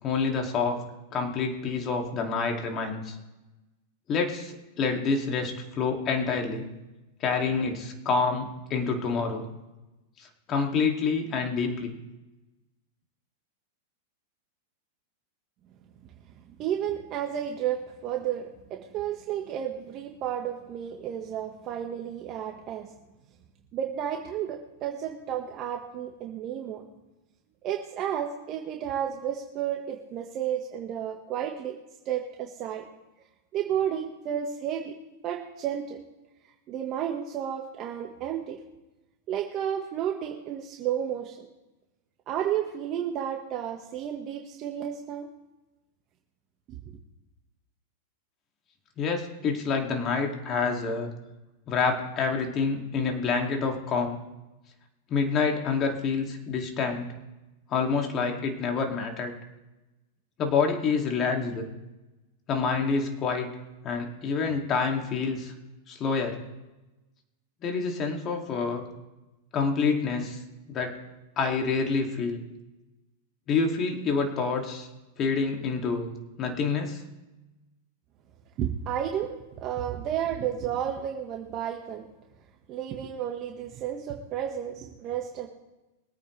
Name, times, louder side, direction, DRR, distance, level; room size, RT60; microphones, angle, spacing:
voice 1, 0.0-0.8 1.1-3.2 4.1-6.7 7.2-9.4 10.2-11.9 49.0-51.1 51.7-54.2 55.1-57.1 57.7-59.3 60.4-61.6 62.5-63.5 63.8-65.5 65.9-66.4 67.6-68.9 69.5-70.4 70.7-71.0 71.4-72.4 73.5-74.9 75.2-76.1 76.4-77.0, left 5 dB, 35° left, 2 dB, 2.7 m, -27 dB
voice 2, 16.6-22.9 23.7-26.8 27.6-31.8 32.0-32.8 33.5-35.0 35.2-36.0 36.7-38.6 39.3-41.5 42.3-45.3 78.6-82.1 82.7-85.5, right 9 dB, 40° right, 1 dB, 1.6 m, -32 dB
23.5 x 8.9 x 3.4 m, 1.0 s
hypercardioid pair, 115°, 0 cm